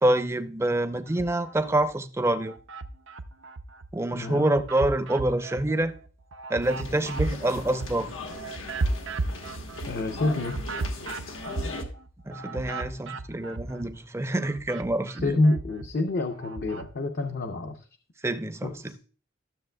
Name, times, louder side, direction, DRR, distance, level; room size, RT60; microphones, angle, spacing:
voice 1, 0.0-2.5 3.9-5.9 6.5-8.1 12.3-15.4 18.2-19.0, right 1 dB, 15° right, 0.5 m, -26 dB
sound 1, 1.1-1.9 2.3-3.9 4.3-14.0 14.3-16.9, right 2 dB, 70° right, 0.5 m, -35 dB
voice 2, 4.1-4.5 9.9-10.6 15.2-17.8 18.6-18.9, left 2 dB, 50° left, 0.6 m, -27 dB
sound 2, 6.6-11.8, left 2 dB, 85° left, 1.2 m, -39 dB
13.0 x 7.0 x 2.2 m
head